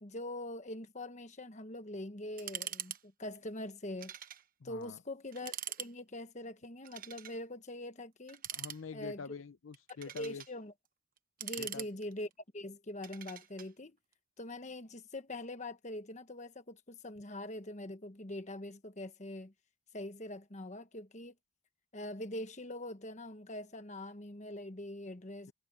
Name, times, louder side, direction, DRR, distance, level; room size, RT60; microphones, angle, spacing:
voice 1, 0.0-4.1 4.6-8.4 8.9-9.2 10.1-10.7 11.4-12.3 12.5-14.0 14.4-19.5 19.9-21.3 21.9-25.5, left 1 dB, 35° left, 1.3 m, -43 dB
sound 1, 2.4-3.0 3.3-3.4 4.0-4.4 4.8-4.9 5.3-5.9 6.8-7.4 8.3-9.2 9.7-10.5 11.2-12.3 13.0-13.7, right 11 dB, 45° right, 1.1 m, -43 dB
voice 2, 4.6-5.0 8.5-10.4 11.6-11.8, left 5 dB, 80° left, 0.6 m, -45 dB
head